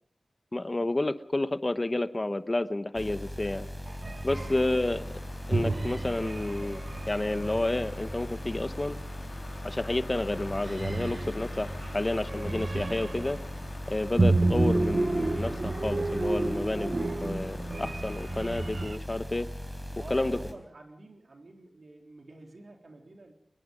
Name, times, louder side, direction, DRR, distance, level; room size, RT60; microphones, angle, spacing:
voice 1, 0.5-3.7 4.2-5.0 5.5-6.8 7.1-9.0 9.6-13.4 13.9-19.5 20.1-20.4, left 2 dB, 35° left, 12 dB, 1.0 m, -30 dB
sound 1, 2.9-20.5, equal, 5° left, 4.5 m, -39 dB
sound 2, 3.9-4.7 5.5-8.2 9.8-10.1 10.4-13.4 14.2-19.0, right 2 dB, 60° right, 1.0 m, -31 dB
sound 3, 4.3-18.9, left 3 dB, 85° left, 3.5 m, -47 dB
voice 2, 20.0-23.3, right 2 dB, 75° right, 2 dB, 3.8 m, -49 dB
23.5 x 22.5 x 5.2 m, 0.65 s
wide cardioid pair, 50°, 0 cm